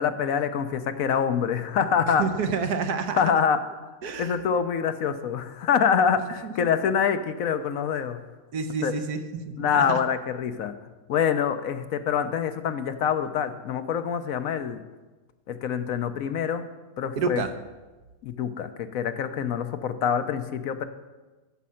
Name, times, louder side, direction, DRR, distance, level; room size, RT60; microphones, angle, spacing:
voice 1, 0.0-2.3 3.1-3.6 4.2-8.2 8.8-8.9 9.6-10.7 11.1-14.8 15.5-16.6 17.0-17.4 18.2-20.8, left 7 dB, 70° left, 10 dB, 1.0 m, -25 dB
voice 2, 2.1-3.2 4.0-4.4 8.5-9.2 9.6-10.0 17.2-17.5, right 5 dB, 80° right, 8 dB, 1.4 m, -28 dB
12.5 x 7.4 x 5.6 m, 1.2 s
omnidirectional pair, 1.7 m